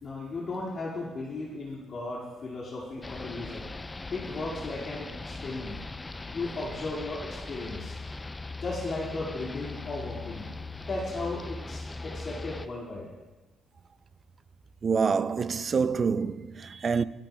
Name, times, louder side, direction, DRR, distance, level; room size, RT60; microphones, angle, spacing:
voice 1, 0.0-3.6 4.1-5.8 6.3-8.0 8.6-10.4 10.9-13.1, left 2 dB, 50° left, 2.1 m, -36 dB
sound 1, 3.0-12.7, left 3 dB, 20° left, 0.4 m, -39 dB
voice 2, 14.8-17.0, right 5 dB, 40° right, 0.4 m, -26 dB
24.0 x 9.1 x 2.3 m
cardioid pair, 90°, 0 cm